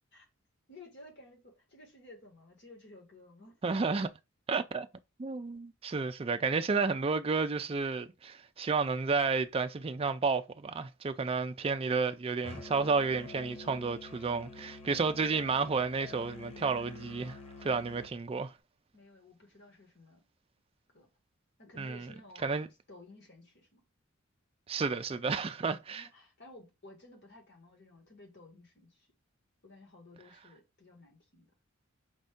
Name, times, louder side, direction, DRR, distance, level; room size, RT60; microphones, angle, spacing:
voice 1, 0.7-3.7 18.9-20.2 20.9-21.1 21.6-23.8 25.9-29.1 29.6-31.5, left 2 dB, 55° left, 1.7 m, -55 dB
voice 2, 3.6-4.1 4.5-4.9 5.2-18.5 21.8-22.1 22.4-22.7 24.7-26.1, right 4 dB, 25° right, 0.4 m, -31 dB
Musical instrument, 12.4-18.1, left 3 dB, 30° left, 0.8 m, -48 dB
5.2 x 2.7 x 3.5 m
head